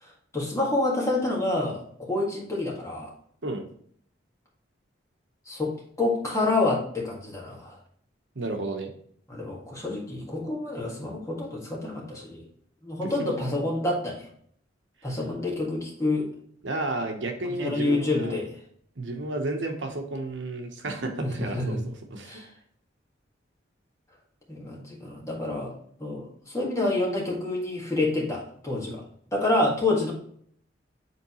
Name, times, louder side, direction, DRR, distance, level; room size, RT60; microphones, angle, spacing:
voice 1, 0.0-3.1 5.5-5.7 6.0-7.8 9.3-12.4 12.8-14.3 15.0-16.3 17.4-18.5 21.2-21.8 22.2-22.5 24.5-25.7 26.0-29.0 29.3-30.1, left 2 dB, 15° left, -3 dB, 1.8 m, -28 dB
voice 2, 8.3-8.9 13.0-13.1 16.6-18.3 19.0-22.4, right 2 dB, 75° right, 4 dB, 1.0 m, -32 dB
8.1 x 3.9 x 3.0 m, 0.62 s
head